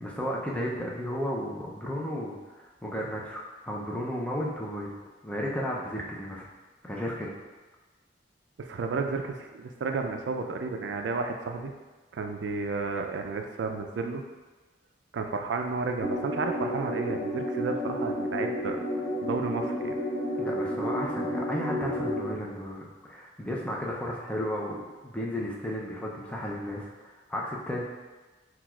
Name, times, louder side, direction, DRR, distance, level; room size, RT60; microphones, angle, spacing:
voice 1, 0.0-4.9 5.2-6.5 6.8-7.4 20.4-27.8, equal, 5° left, -3 dB, 0.5 m, -34 dB
voice 2, 8.6-11.7 12.1-14.2 15.1-18.8 19.2-19.9, right 4 dB, 75° right, 4 dB, 0.4 m, -32 dB
sound 1, 16.0-22.3, equal, 80° left, 0.7 m, -31 dB
5.9 x 2.3 x 2.3 m, 1.2 s
head